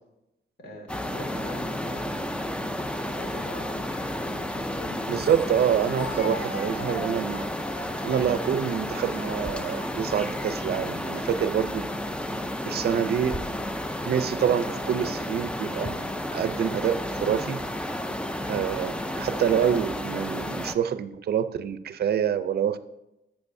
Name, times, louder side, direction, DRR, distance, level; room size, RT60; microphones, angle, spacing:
voice 1, 0.6-2.4 2.9-5.0 22.0-22.1, left 1 dB, 60° left, 1 dB, 2.3 m, -43 dB
sound 1, 0.9-20.7, left 1 dB, 5° left, 0.4 m, -32 dB
voice 2, 5.1-7.4 8.0-11.8 12.7-13.4 14.0-16.0 16.3-17.6 18.5-22.8, right 8 dB, 65° right, 13 dB, 0.5 m, -26 dB
Speech, 5.9-10.8 11.6-11.9 12.8-13.4, left 2 dB, 80° left, 1.5 m, -41 dB
15.0 x 6.9 x 2.6 m, 0.91 s
wide cardioid pair, 155°, 18 cm